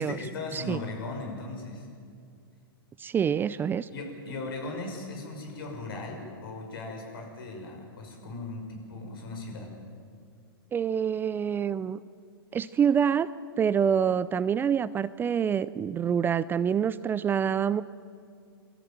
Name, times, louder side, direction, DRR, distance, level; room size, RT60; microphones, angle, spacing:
voice 1, 0.0-1.9 3.9-9.7, left 2 dB, 70° left, 2 dB, 6.3 m, -38 dB
voice 2, 3.0-3.9 10.7-12.0 12.5-13.3 13.6-17.8, right 8 dB, 15° right, 16 dB, 0.4 m, -26 dB
23.5 x 14.5 x 9.0 m, 2.3 s
hypercardioid pair, 120°, 12 cm